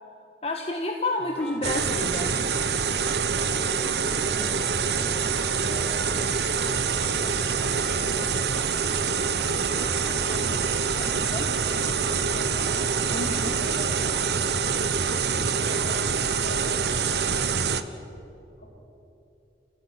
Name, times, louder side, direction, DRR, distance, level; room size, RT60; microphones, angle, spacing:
voice 1, 0.4-2.3 11.1-11.5 13.1-13.6, left 2 dB, 35° left, 3 dB, 1.4 m, -30 dB
sound 1, 1.2-14.8, equal, 5° left, 1.9 m, -45 dB
sound 2, 1.6-17.8, right 6 dB, 65° right, 1.1 m, -25 dB
voice 2, 4.0-9.0 9.7-11.2 11.4-14.2 15.4-17.7 18.6-18.7, right 1 dB, 60° left, -1 dB, 7.4 m, -43 dB
29.0 x 16.5 x 9.9 m, 2.9 s
head